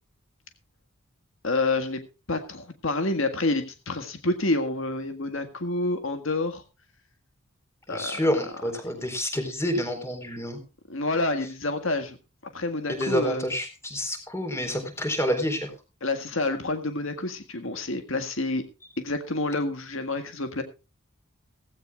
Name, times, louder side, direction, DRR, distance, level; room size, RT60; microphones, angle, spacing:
voice 1, 1.4-2.0 2.3-6.6 7.9-8.3 10.9-12.2 12.5-13.4 16.0-18.6 19.0-20.6, left 2 dB, 65° left, 8 dB, 1.8 m, -28 dB
voice 2, 7.9-10.6 12.9-15.7, equal, 10° left, 6 dB, 4.1 m, -28 dB
17.5 x 16.5 x 2.4 m, 0.31 s
head